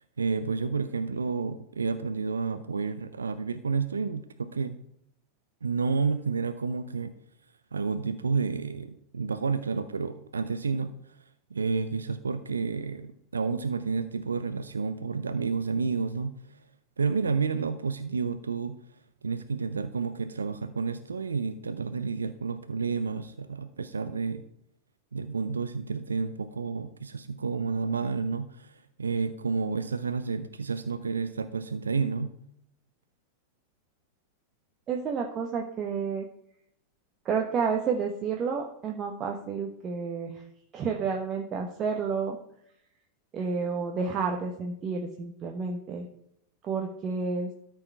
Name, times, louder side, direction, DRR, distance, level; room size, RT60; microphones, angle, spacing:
voice 1, 0.2-4.8 5.6-7.1 7.7-11.2 11.5-16.3 17.0-18.8 19.2-24.4 25.1-32.3, right 5 dB, 85° right, 11 dB, 0.5 m, -30 dB
voice 2, 34.9-36.3 37.2-40.4 40.7-42.4 43.3-46.1 46.6-47.5, right 5 dB, 35° right, 2 dB, 1.1 m, -30 dB
13.0 x 4.6 x 4.6 m, 0.74 s
figure-of-eight pair, 90°, 0 cm